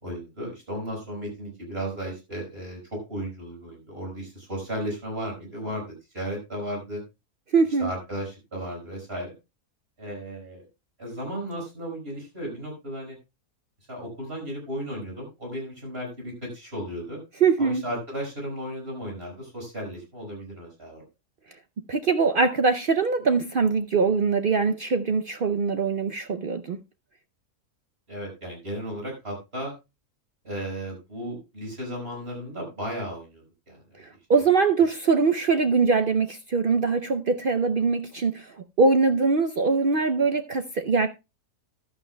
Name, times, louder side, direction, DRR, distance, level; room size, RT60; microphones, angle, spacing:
voice 1, 0.0-5.8 6.1-7.0 7.8-9.3 10.0-10.7 11.0-13.2 13.9-17.2 17.6-21.0 28.1-29.7 30.4-34.0, equal, 40° right, 5.9 m, -35 dB
voice 2, 7.5-7.9 17.4-17.8 21.9-26.8 34.3-41.1, right 4 dB, 60° right, 0.5 m, -22 dB
14.5 x 11.5 x 2.2 m
omnidirectional pair, 1.6 m